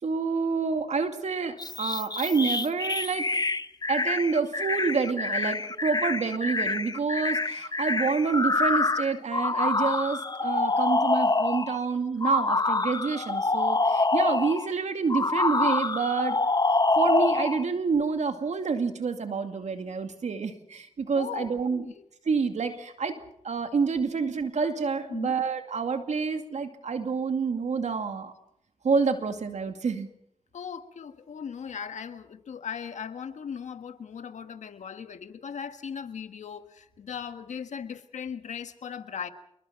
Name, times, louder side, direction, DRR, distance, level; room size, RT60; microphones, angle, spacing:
voice 1, 0.0-3.3 3.9-16.4 17.0-21.8 22.3-23.2 23.4-28.3 28.8-30.1, right 5 dB, 75° right, 6 dB, 2.3 m, -28 dB
sound 1, 1.6-11.8 12.2-14.7 15.1-17.6, left 3 dB, 35° left, 1.1 m, -26 dB
voice 2, 21.1-21.9 25.1-25.3 30.5-39.3, left 7 dB, 90° left, 9 dB, 1.6 m, -38 dB
28.0 x 22.0 x 5.8 m, 0.73 s
cardioid pair, 50°, 12 cm